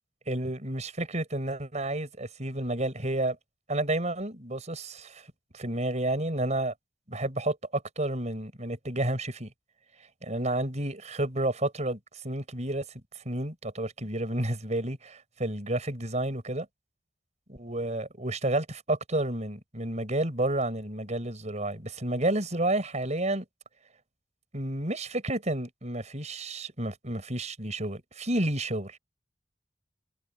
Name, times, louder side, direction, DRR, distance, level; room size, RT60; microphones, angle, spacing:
voice 1, 0.3-3.4 3.7-5.2 5.5-6.7 7.1-9.5 10.2-12.0 12.2-12.9 13.3-16.7 17.5-23.4 24.5-29.0, right 1 dB, 40° right, 5.7 m, -30 dB
head